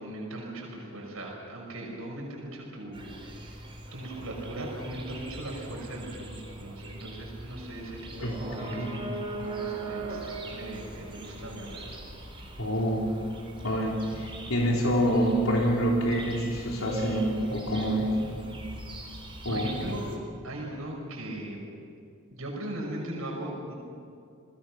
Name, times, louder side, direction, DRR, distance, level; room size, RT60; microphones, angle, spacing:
voice 1, 0.0-12.0 19.0-19.1 19.5-20.0 20.4-21.7 22.3-23.7, right 1 dB, 85° right, -1 dB, 5.6 m, -39 dB
sound 1, 2.9-20.2, right 2 dB, 25° right, 4.0 m, -41 dB
voice 2, 8.2-9.0 12.6-13.1 13.6-18.2 19.4-19.8, equal, 85° left, -2 dB, 3.8 m, -27 dB
29.5 x 20.5 x 6.1 m, 2.3 s
head